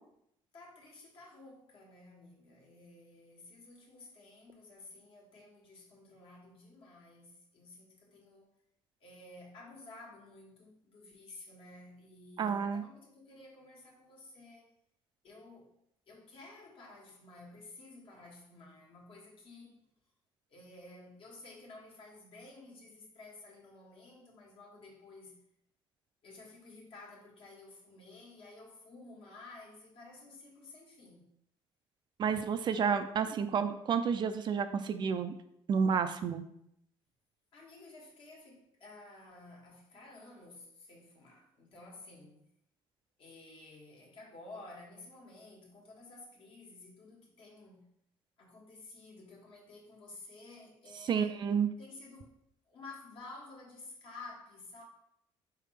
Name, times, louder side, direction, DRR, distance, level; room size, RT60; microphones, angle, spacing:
voice 1, 0.5-8.5 9.0-14.7 15.2-15.7 16.1-19.9 20.5-25.3 26.2-31.3 37.5-42.4 43.2-47.8 48.4-51.4 51.8-52.3 52.7-54.8, left 2 dB, 60° left, -1 dB, 1.5 m, -53 dB
voice 2, 12.4-12.8 32.2-35.3 35.7-36.4 51.0-51.7, right 6 dB, 45° right, 9 dB, 0.4 m, -30 dB
4.7 x 3.4 x 3.2 m, 0.76 s
cardioid pair, 90°, 10 cm